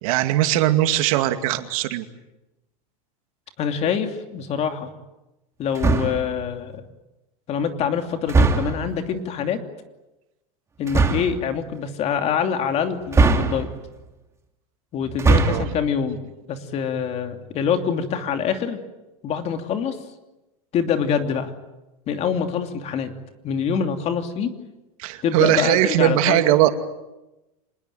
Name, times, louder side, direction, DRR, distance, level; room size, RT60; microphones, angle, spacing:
voice 1, 0.0-2.0 15.4-15.7 25.0-26.7, right 14 dB, 70° right, 8 dB, 2.4 m, -20 dB
voice 2, 3.6-4.9 5.6-6.8 7.5-9.6 10.8-13.7 14.9-16.2 16.5-18.8 19.2-20.0 20.7-21.5 22.1-23.1 23.4-24.5 25.2-26.4, left 7 dB, 35° left, 6 dB, 2.8 m, -25 dB
sound 1, 5.8-6.3 8.3-8.9 10.9-11.4 13.1-13.9 15.1-15.8, right 3 dB, 15° right, 2.4 m, -19 dB
26.0 x 20.5 x 9.4 m, 1.0 s
supercardioid pair, 145°, 18 cm